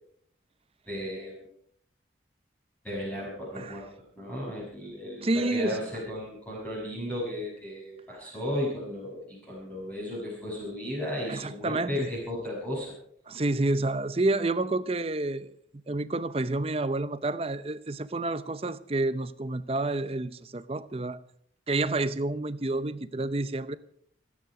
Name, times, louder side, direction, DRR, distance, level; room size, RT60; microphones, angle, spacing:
voice 1, 0.9-1.5 2.8-3.9 4.1-12.9, left 1 dB, 10° left, 6.2 m, -35 dB
voice 2, 5.2-5.8 11.3-12.1 13.3-15.5 15.9-21.2 21.7-23.8, right 2 dB, 30° right, 0.6 m, -29 dB
28.5 x 9.5 x 4.9 m
head